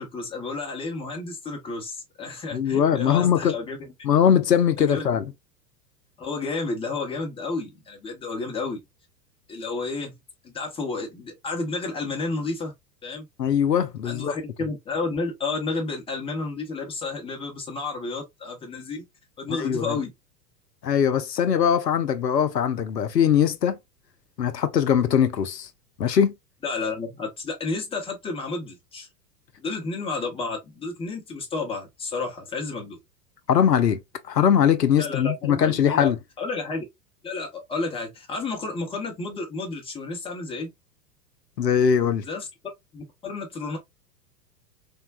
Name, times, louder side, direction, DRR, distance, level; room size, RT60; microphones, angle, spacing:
voice 1, 0.0-3.9 4.8-5.0 6.2-8.8 9.5-10.2 10.4-12.7 13.0-13.3 14.0-19.1 19.4-20.1 26.6-29.1 29.6-33.0 35.0-36.1 36.4-36.8 37.2-40.7 42.2-42.5 42.9-43.8, left 3 dB, 10° left, 0.8 m, -31 dB
voice 2, 2.5-3.6 4.0-5.3 13.4-14.3 19.5-20.0 20.8-23.8 24.4-25.7 26.0-26.3 33.5-34.0 34.3-36.2 41.6-42.2, left 8 dB, 85° left, 0.6 m, -21 dB
3.5 x 2.2 x 2.3 m
figure-of-eight pair, 90°, 48 cm